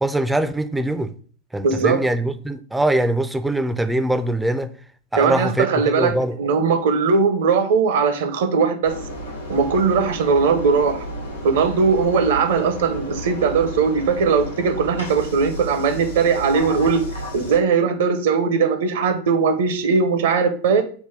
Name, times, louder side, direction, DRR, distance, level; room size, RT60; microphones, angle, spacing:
voice 1, 0.0-1.1 1.5-4.7 5.1-6.4, right 1 dB, 5° right, 0.3 m, -22 dB
voice 2, 1.6-2.0 5.2-9.0 9.5-11.0 11.4-17.0 17.3-20.8, right 5 dB, 55° right, 0.6 m, -19 dB
Engine, 8.8-17.6, equal, 80° left, 1.0 m, -32 dB
3.7 x 2.2 x 4.3 m
figure-of-eight pair, 90°, 0 cm